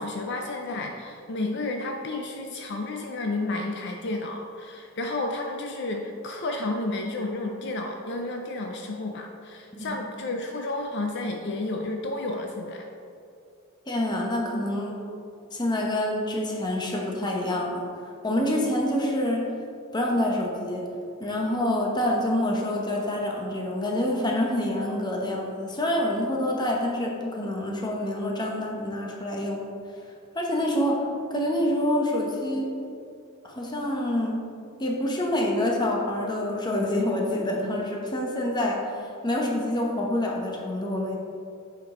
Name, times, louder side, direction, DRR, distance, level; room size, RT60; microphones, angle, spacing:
voice 1, 0.0-12.9, left 2 dB, 55° left, 3 dB, 0.5 m, -31 dB
voice 2, 13.9-15.0 15.5-17.8 18.2-19.4 19.9-20.9 21.2-29.7 30.3-32.7 33.4-34.5 34.8-38.9 39.2-41.2, left 1 dB, 20° left, -1 dB, 0.9 m, -27 dB
7.4 x 5.3 x 3.7 m, 2.5 s
head